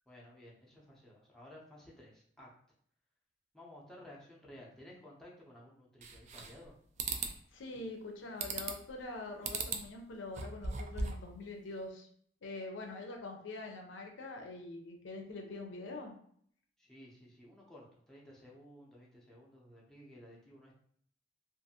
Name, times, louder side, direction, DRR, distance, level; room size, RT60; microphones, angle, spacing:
voice 1, 0.1-2.5 3.5-6.7 16.8-20.7, left 1 dB, 5° left, -5 dB, 0.6 m, -55 dB
sound 1, 6.0-6.7 7.0-7.3 8.4-8.9 9.4-9.9 10.2-11.3, right 4 dB, 40° right, 0.3 m, -37 dB
voice 2, 7.5-12.1 12.4-16.1, left 2 dB, 85° left, 3 dB, 0.6 m, -44 dB
2.6 x 2.5 x 2.7 m, 0.63 s
head